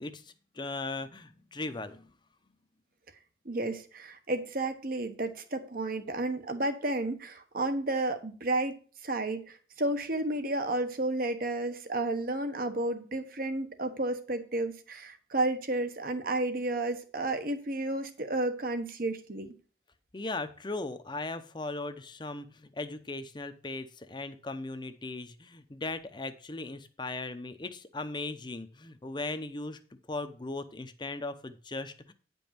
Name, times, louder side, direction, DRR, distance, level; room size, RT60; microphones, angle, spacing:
voice 1, 0.0-2.1 20.1-29.8 30.1-32.1, left 2 dB, 25° left, 10 dB, 0.8 m, -38 dB
voice 2, 3.4-19.5, right 2 dB, 55° right, 8 dB, 1.2 m, -32 dB
9.6 x 5.4 x 5.9 m, 0.39 s
head